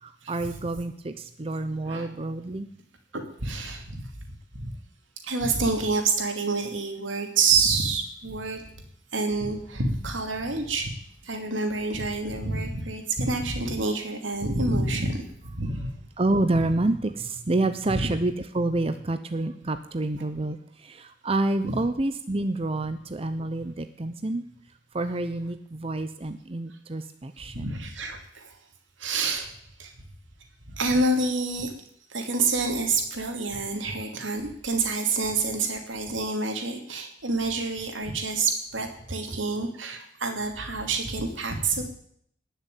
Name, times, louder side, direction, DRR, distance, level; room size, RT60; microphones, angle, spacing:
voice 1, 0.0-2.7 16.2-24.4 24.9-27.8, right 2 dB, 30° right, 9 dB, 0.7 m, -28 dB
voice 2, 3.1-4.1 4.5-4.7 5.2-8.6 9.1-10.9 11.2-15.8 17.9-18.1 21.7-21.8 27.4-28.6 29.0-29.5 29.8-29.9 30.7-31.7 32.1-41.8, right 3 dB, 85° right, 5 dB, 2.8 m, -27 dB
19.0 x 6.7 x 9.3 m, 0.68 s
head